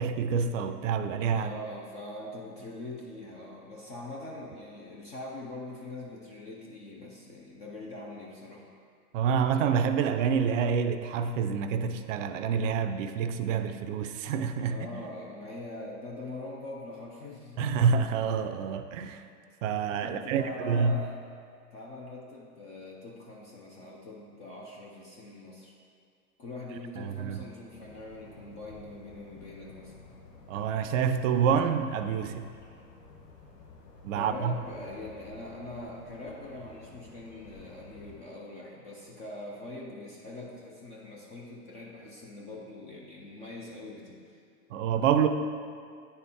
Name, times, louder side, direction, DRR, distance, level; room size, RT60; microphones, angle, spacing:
voice 1, 0.0-1.5 9.1-15.0 17.6-19.2 19.6-21.0 27.0-27.4 30.5-32.5 34.0-34.5 44.7-45.3, right 6 dB, 55° right, 9 dB, 0.5 m, -27 dB
voice 2, 1.3-8.7 14.7-17.7 20.0-21.2 21.7-25.7 26.4-29.9 34.1-44.4, left 1 dB, 15° left, -3 dB, 0.3 m, -43 dB
sound 1, 27.7-38.2, left 2 dB, 90° left, 1.1 m, -52 dB
9.4 x 4.2 x 3.6 m, 2.3 s
hypercardioid pair, 110°, 47 cm